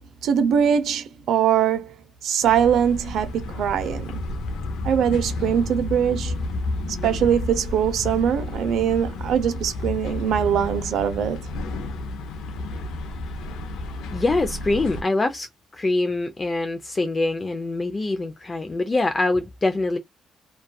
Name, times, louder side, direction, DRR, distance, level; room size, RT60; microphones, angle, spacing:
voice 1, 0.2-1.9 2.2-4.2 4.8-6.4 7.0-11.4, right 8 dB, 75° right, 0.5 m, -22 dB
sound 1, 2.4-15.0, left 2 dB, 85° left, 0.5 m, -31 dB
voice 2, 14.1-15.5 15.7-20.0, left 2 dB, 30° left, 0.3 m, -24 dB
2.6 x 2.3 x 2.2 m
cardioid pair, 90°, 0 cm